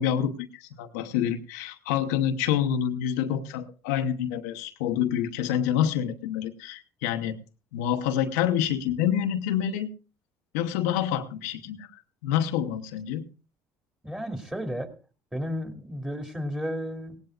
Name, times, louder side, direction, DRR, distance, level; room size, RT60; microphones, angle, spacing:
voice 1, 0.0-7.4 7.7-9.9 10.5-13.2, left 9 dB, 85° left, 6 dB, 0.9 m, -27 dB
voice 2, 14.0-14.9 15.3-17.2, equal, 10° right, 6 dB, 2.4 m, -33 dB
18.5 x 17.0 x 2.4 m, 0.34 s
supercardioid pair, 80°, 8 cm